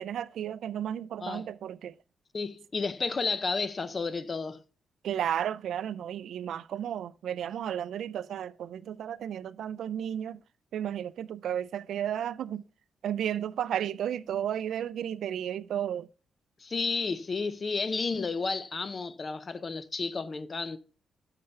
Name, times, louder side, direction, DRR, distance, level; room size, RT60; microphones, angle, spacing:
voice 1, 0.0-1.9 5.0-10.4 10.7-12.6 13.0-16.1, right 10 dB, 75° right, 0.3 m, -33 dB
voice 2, 2.3-4.6 16.6-20.8, left 4 dB, 30° left, 0.5 m, -32 dB
9.6 x 6.7 x 3.3 m
wide cardioid pair, 175°, 0 cm